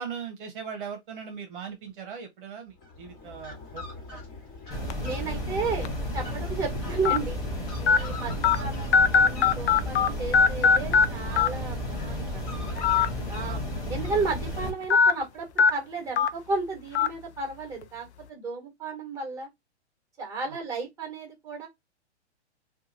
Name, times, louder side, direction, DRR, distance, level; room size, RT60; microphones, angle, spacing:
voice 1, 0.0-4.2 8.3-8.4 13.4-13.6 20.5-20.6, right 6 dB, 45° right, 0.9 m, -39 dB
Fowl, 2.7-15.7, left 3 dB, 25° left, 1.5 m, -44 dB
sound 1, 4.7-14.7, left 1 dB, 10° left, 1.0 m, -33 dB
sound 2, 4.9-5.1 5.8-5.9 7.1-7.2 7.9-8.0 8.4-8.6 8.9-10.1 10.3-11.1 11.4-11.5 12.8-13.1 13.4-13.5 14.9-15.1 15.6-15.7 16.2-16.3 17.0-17.1, left 6 dB, 70° left, 0.5 m, -19 dB
voice 2, 5.0-7.4 7.8-12.6 13.3-13.6 13.9-19.5 20.2-21.7, right 4 dB, 10° right, 1.4 m, -33 dB
2.7 x 2.4 x 3.9 m
hypercardioid pair, 135°, 35 cm